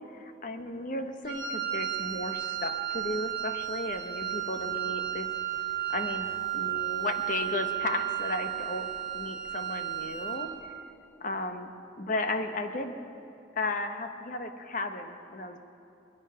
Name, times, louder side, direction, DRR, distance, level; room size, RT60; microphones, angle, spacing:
voice 1, 0.0-5.3 5.9-6.3 6.5-8.9 9.1-10.5 11.2-11.7 12.0-12.9 13.6-15.6, left 2 dB, 45° left, 6 dB, 0.9 m, -34 dB
Wind instrument woodwind instrument, 1.2-10.5, right 11 dB, 25° right, 2.9 m, -33 dB
20.5 x 12.0 x 5.6 m, 2.8 s
head